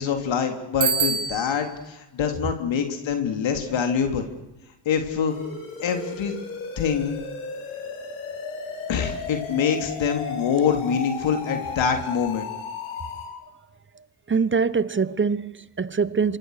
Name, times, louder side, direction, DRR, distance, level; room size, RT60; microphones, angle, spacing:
voice 1, 0.0-4.3 4.8-5.3 5.8-6.3 6.8-7.2 8.9-12.5, left 7 dB, 65° left, 3.4 m, -25 dB
Bicycle bell, 0.8-1.8, right 6 dB, 70° right, 2.9 m, -25 dB
sound 1, 5.3-13.3, left 5 dB, 85° left, 6.3 m, -35 dB
voice 2, 13.9-16.4, right 5 dB, 25° right, 1.1 m, -24 dB
26.5 x 24.0 x 6.7 m
supercardioid pair, 60°, 48 cm